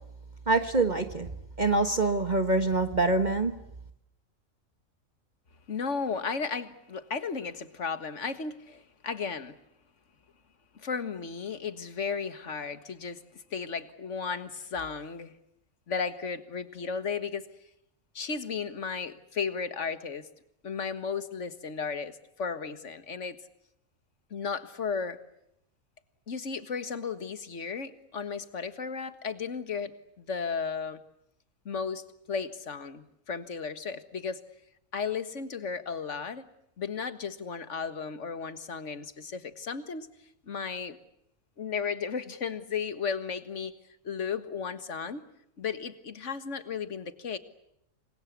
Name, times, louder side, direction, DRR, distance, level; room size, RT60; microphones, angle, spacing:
voice 1, 0.5-1.3 1.6-3.6, right 3 dB, 35° right, 8 dB, 1.5 m, -25 dB
voice 2, 5.7-9.6 10.7-15.3 15.9-17.5 18.1-20.3 20.6-23.4 24.3-25.2 26.3-31.0 31.7-34.4 34.9-36.5 36.8-40.1 40.5-41.0 41.6-43.8 44.0-45.2 45.6-47.4, left 5 dB, 60° left, 11 dB, 2.0 m, -34 dB
28.5 x 23.5 x 8.3 m, 0.80 s
omnidirectional pair, 1.4 m